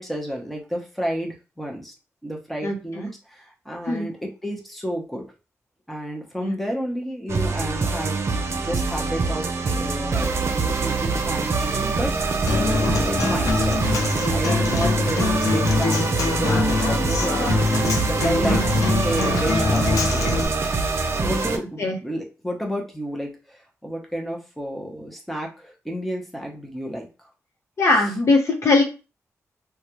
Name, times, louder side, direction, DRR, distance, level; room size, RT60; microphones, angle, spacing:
voice 1, 0.0-1.9 2.2-5.2 5.9-12.1 12.5-17.5 18.0-20.3 21.2-27.1, equal, ahead, 0 dB, 0.9 m, -31 dB
voice 2, 2.6-3.1 3.9-4.1 6.4-6.5 18.4-18.7 21.2-21.3 21.8-22.0 27.8-28.8, left 2 dB, 60° left, 2 dB, 0.9 m, -21 dB
sound 1, 7.3-21.6, right 4 dB, 55° right, 0.6 m, -24 dB
Human voice / Acoustic guitar, 12.5-20.5, left 3 dB, 90° left, 0.6 m, -23 dB
3.1 x 2.3 x 3.0 m, 0.31 s
wide cardioid pair, 100°, 6 cm